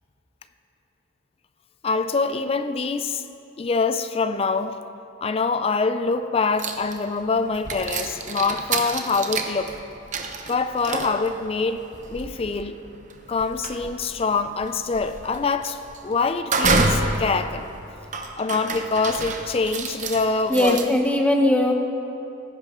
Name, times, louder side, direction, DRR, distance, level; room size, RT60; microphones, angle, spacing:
voice 1, 1.8-3.2 3.6-4.8 5.2-9.8 10.5-11.8 12.1-12.8 13.3-17.7 18.4-20.8, left 4 dB, 30° left, 10 dB, 0.4 m, -25 dB
sound 1, 6.6-7.2 7.5-20.8, right 3 dB, 35° right, 0.8 m, -28 dB
voice 2, 20.5-21.7, left 1 dB, 5° left, 2 dB, 0.9 m, -19 dB
18.5 x 10.5 x 3.7 m, 3.0 s
head